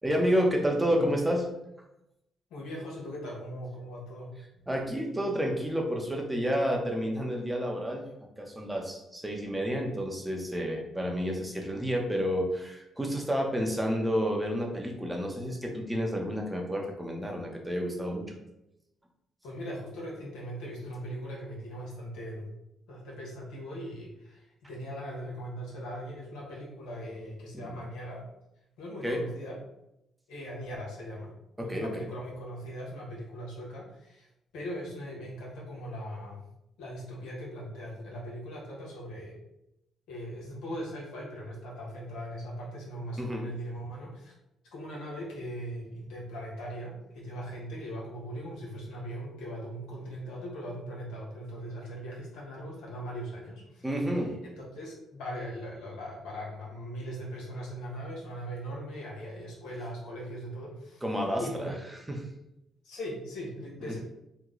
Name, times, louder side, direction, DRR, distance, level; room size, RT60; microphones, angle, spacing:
voice 1, 0.0-1.5 4.7-8.0 8.4-18.4 27.5-27.7 29.0-29.2 31.6-32.0 43.2-43.4 53.8-54.4 61.0-61.7 62.1-62.2 63.9-64.0, equal, 10° right, 1 dB, 0.7 m, -30 dB
voice 2, 2.5-4.4 19.4-22.5 22.9-28.2 28.8-29.6 30.3-31.3 31.6-34.3 34.5-36.4 36.8-39.3 40.1-44.3 44.7-54.3 54.6-61.0 61.4-61.7 62.8-64.0, equal, 90° left, -4 dB, 1.1 m, -40 dB
3.0 x 2.1 x 3.7 m, 0.86 s
cardioid pair, 90°, 0 cm